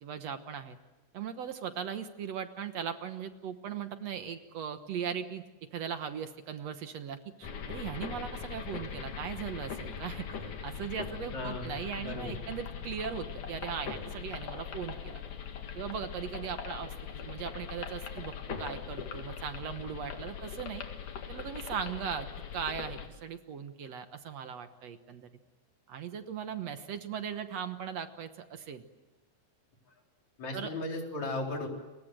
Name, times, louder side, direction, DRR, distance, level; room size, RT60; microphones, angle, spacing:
voice 1, 0.0-0.8 1.1-5.4 5.7-15.2 15.8-20.8 21.3-22.3 22.5-25.3 25.9-28.8 30.5-30.7, right 8 dB, 65° right, 9 dB, 2.2 m, -39 dB
sound 1, 7.4-23.1, left 7 dB, 85° left, 3.7 m, -41 dB
voice 2, 11.3-12.4 30.4-31.7, left 2 dB, 65° left, 1 dB, 5.4 m, -36 dB
29.5 x 23.5 x 7.8 m, 1.1 s
omnidirectional pair, 3.5 m